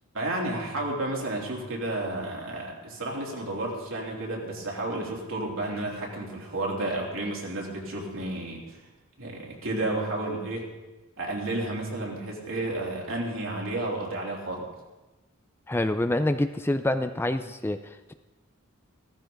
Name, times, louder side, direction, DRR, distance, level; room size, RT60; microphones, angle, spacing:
voice 1, 0.1-8.8 9.2-10.7 11.2-14.7, right 2 dB, 70° right, -3 dB, 3.2 m, -31 dB
voice 2, 15.7-18.1, left 1 dB, 10° left, 9 dB, 0.4 m, -27 dB
15.5 x 14.5 x 3.9 m, 1.1 s
head